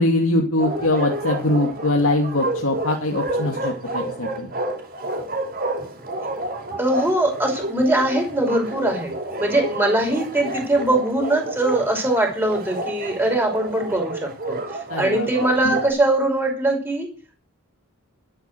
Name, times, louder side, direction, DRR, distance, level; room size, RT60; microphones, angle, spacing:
voice 1, 0.0-4.5 14.9-15.3 15.6-15.7, left 2 dB, 65° left, 1 dB, 2.5 m, -22 dB
Bark, 0.6-15.9, right 2 dB, 40° right, 5.4 m, -30 dB
voice 2, 6.8-9.1 9.4-14.6 15.0-17.1, right 1 dB, 10° right, 2 dB, 5.8 m, -21 dB
12.5 x 10.5 x 6.9 m, 0.36 s
head